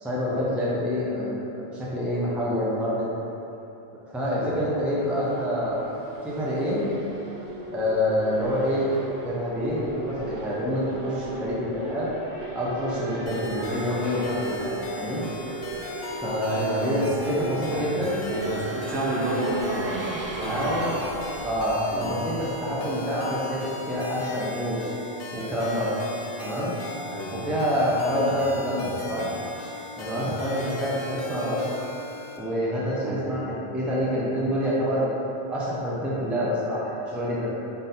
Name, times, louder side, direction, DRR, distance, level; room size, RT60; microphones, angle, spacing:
voice 1, 0.0-3.1 4.1-5.9 6.2-6.9 7.7-8.9 9.2-12.1 12.5-15.2 16.2-18.2 18.8-18.9 20.5-20.9 21.4-24.8 25.3-26.0 26.4-26.7 27.3-29.2 30.0-31.6 32.4-35.1 35.5-37.5, equal, ahead, -7 dB, 0.4 m, -27 dB
Race car auto racing / Accelerating revving vroom, 4.6-22.7, right 2 dB, 45° right, 0.6 m, -36 dB
sound 1, 13.3-32.4, left 2 dB, 60° left, 0.7 m, -38 dB
voice 2, 16.5-17.0 17.4-20.0 20.3-21.0 21.9-22.1 27.1-27.8 28.3-28.4 28.6-29.3 29.7-30.3 33.0-33.2, right 1 dB, 85° right, -3 dB, 1.0 m, -32 dB
3.8 x 2.6 x 4.1 m, 3.0 s
omnidirectional pair, 1.1 m